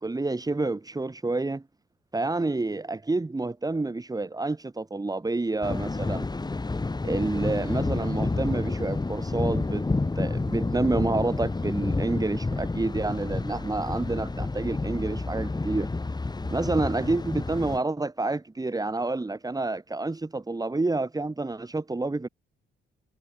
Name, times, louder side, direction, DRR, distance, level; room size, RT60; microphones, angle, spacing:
voice 1, 0.0-1.6 2.1-6.3 7.0-9.8 10.2-15.9 16.5-22.3, right 2 dB, 20° right, 5.8 m, -28 dB
Thunder, 5.6-17.8, left 3 dB, 20° left, 5.7 m, -29 dB
cardioid pair, 90°, 20 cm